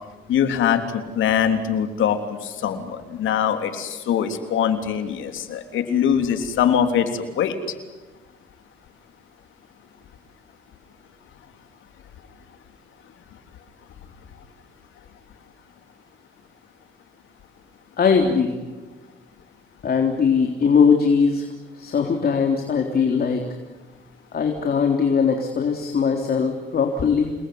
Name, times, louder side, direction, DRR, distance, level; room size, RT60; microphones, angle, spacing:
voice 1, 0.3-7.6, left 8 dB, 80° left, 6 dB, 3.5 m, -22 dB
voice 2, 18.0-18.6 19.8-21.5 21.7-23.5 24.3-27.3, left 6 dB, 50° left, 3 dB, 3.6 m, -20 dB
29.5 x 20.5 x 9.7 m, 1.2 s
cardioid pair, 90°, 20 cm